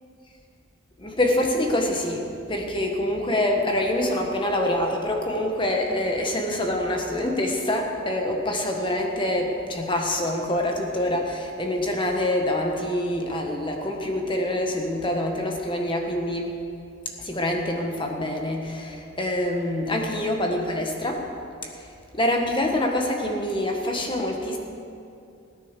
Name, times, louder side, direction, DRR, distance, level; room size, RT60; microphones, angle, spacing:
voice 1, 1.0-16.6 17.2-21.2 21.6-21.7 22.1-24.6, left 1 dB, 25° left, 2 dB, 1.5 m, -25 dB
17.5 x 9.6 x 6.7 m, 2.6 s
head